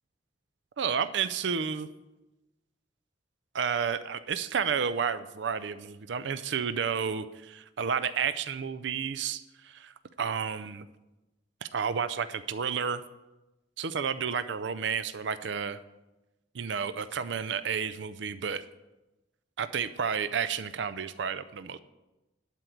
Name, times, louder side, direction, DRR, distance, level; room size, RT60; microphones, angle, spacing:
voice 1, 0.8-1.9 3.5-9.9 10.2-10.9 11.6-13.0 13.8-15.8 16.5-18.6 19.6-21.8, right 6 dB, 70° right, 13 dB, 0.5 m, -31 dB
11.5 x 4.6 x 8.0 m, 1.0 s
head